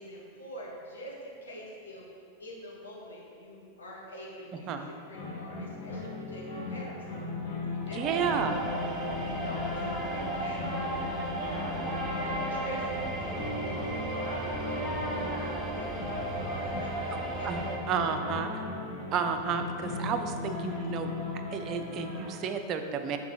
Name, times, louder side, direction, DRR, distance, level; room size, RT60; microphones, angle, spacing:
voice 1, 0.0-8.7 9.3-10.7 11.3-17.7 18.0-18.2, equal, 70° left, -4 dB, 0.9 m, -45 dB
sound 1, 5.1-22.3, left 2 dB, 45° left, 1.3 m, -36 dB
voice 2, 7.9-8.6 17.4-18.5 19.1-21.1 21.5-23.2, right 6 dB, 35° right, 7 dB, 0.4 m, -31 dB
sound 2, 8.0-17.8, right 2 dB, 15° right, 0.8 m, -36 dB
5.9 x 3.7 x 4.5 m, 2.5 s
figure-of-eight pair, 90°, 0 cm